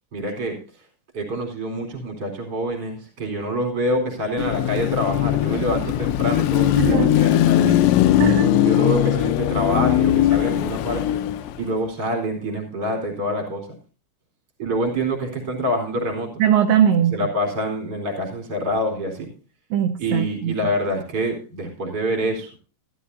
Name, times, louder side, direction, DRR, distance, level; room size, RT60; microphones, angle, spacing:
voice 1, 0.1-0.6 1.1-7.8 8.5-11.0 11.6-13.7 14.6-16.4 17.1-19.3 20.0-22.5, equal, 25° right, 1 dB, 3.9 m, -26 dB
Car passing by / Traffic noise roadway noise / Engine, 4.4-11.7, left 13 dB, 75° left, 2.8 m, -19 dB
voice 2, 6.8-7.1 8.2-8.6 16.4-17.3 19.7-20.5, right 9 dB, 75° right, 4 dB, 2.9 m, -20 dB
15.0 x 13.5 x 2.7 m, 0.35 s
omnidirectional pair, 6.0 m